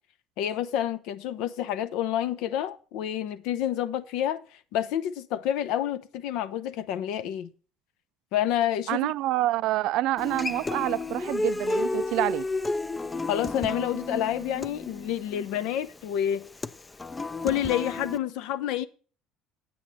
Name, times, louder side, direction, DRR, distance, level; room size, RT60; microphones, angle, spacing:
voice 1, 0.4-4.4 4.7-7.5 8.3-9.1 13.3-16.4 17.4-18.9, left 11 dB, 75° left, 0.7 m, -28 dB
voice 2, 8.9-12.5, right 15 dB, 65° right, 0.3 m, -27 dB
Human voice / Acoustic guitar, 10.2-18.2, left 2 dB, 15° left, 0.4 m, -32 dB
8.7 x 8.7 x 4.2 m
cardioid pair, 125°, 0 cm